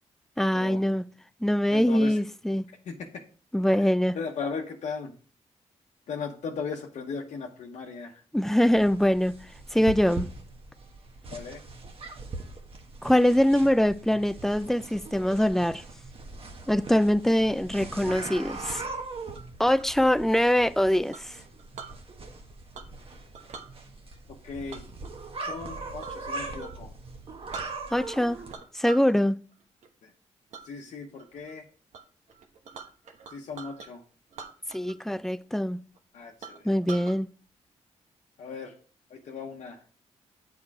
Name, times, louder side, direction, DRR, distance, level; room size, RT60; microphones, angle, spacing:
voice 1, 0.4-1.0 1.4-2.6 3.5-4.2 8.3-9.3 9.7-10.3 13.0-15.8 16.7-18.8 19.6-21.4 27.9-28.4 28.7-29.4 34.7-35.8 36.6-37.3, equal, 5° left, 0.4 m, -23 dB
voice 2, 1.7-2.1 2.8-3.1 3.7-3.8 4.1-5.1 6.1-8.2 11.3-11.6 24.4-24.8 25.4-26.9 30.0-30.1 30.6-31.6 33.3-34.0 36.1-36.7 38.4-38.7 39.1-39.8, left 5 dB, 75° left, 1.0 m, -37 dB
sound 1, 8.7-28.5, right 3 dB, 50° right, 1.3 m, -41 dB
Chink clink, 19.4-19.9 21.1-22.0 22.7-23.1 23.3-23.7 24.7-26.2 26.6-26.8 27.2-27.3 27.5-28.2 28.5-29.1 29.5-29.9 30.5-30.7 31.2-31.5 31.9-32.0 32.3-33.9 34.3-35.1 35.4-35.5 36.0-36.1 36.4-37.2, right 5 dB, 70° right, 1.1 m, -44 dB
7.6 x 4.7 x 4.8 m
cardioid pair, 85°, 12 cm